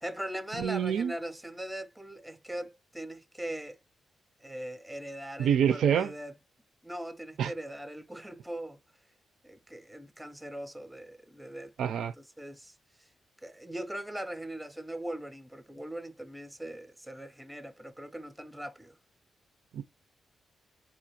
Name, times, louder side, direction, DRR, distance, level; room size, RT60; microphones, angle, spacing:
voice 1, 0.0-3.8 4.4-6.3 6.8-8.8 9.4-12.7 13.4-18.9, right 1 dB, 5° right, 0.4 m, -40 dB
voice 2, 0.6-1.1 5.4-6.1 7.4-7.5 11.8-12.1 19.7-19.8, right 8 dB, 75° right, 0.4 m, -26 dB
4.4 x 2.4 x 2.8 m
wide cardioid pair, 155°, 0 cm